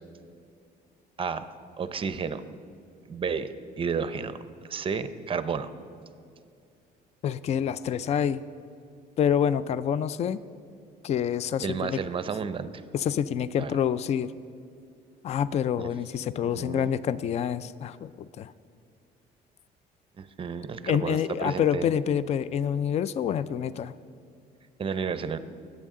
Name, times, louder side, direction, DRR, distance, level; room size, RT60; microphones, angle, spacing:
voice 1, 1.2-1.5 1.8-2.4 3.1-3.5 3.8-4.4 4.7-5.7 11.6-12.7 13.6-13.7 15.8-15.9 16.4-16.9 20.2-21.9 24.8-25.4, right 6 dB, 30° right, 12 dB, 0.6 m, -31 dB
voice 2, 7.2-8.4 9.2-10.4 11.0-12.0 12.9-14.3 15.2-18.5 20.9-23.9, left 8 dB, 40° left, 16 dB, 0.4 m, -27 dB
20.5 x 8.6 x 3.7 m, 2.4 s
cardioid pair, 110°, 17 cm